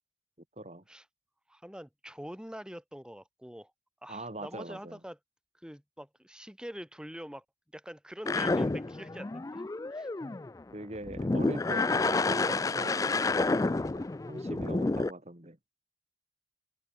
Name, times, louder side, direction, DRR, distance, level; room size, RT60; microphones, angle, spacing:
voice 1, 1.5-3.7 4.0-5.2 5.6-7.4 7.7-10.1, equal, 5° right, 3.2 m, -45 dB
voice 2, 4.1-5.0 10.2-10.4 10.7-13.3 13.5-15.6, right 1 dB, 35° right, 2.9 m, -42 dB
sound 1, 8.3-10.6 11.0-15.1, left 3 dB, 20° left, 0.3 m, -29 dB
head